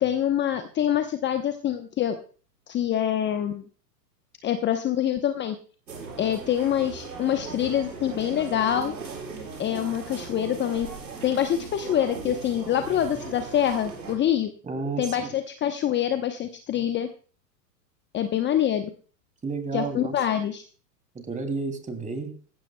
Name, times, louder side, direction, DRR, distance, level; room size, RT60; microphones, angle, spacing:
voice 1, 0.0-2.2 2.7-3.6 4.4-5.6 6.2-9.0 9.6-10.9 11.2-14.5 15.0-17.1 18.1-18.9 19.7-20.6, left 10 dB, 20° left, 7 dB, 0.9 m, -25 dB
sound 1, 5.9-14.1, right 4 dB, 85° right, 5.6 m, -38 dB
voice 2, 14.6-15.3 19.4-20.1 21.1-22.3, right 4 dB, 15° right, 6 dB, 2.8 m, -31 dB
18.5 x 15.5 x 2.2 m, 0.41 s
hypercardioid pair, 110°, 50 cm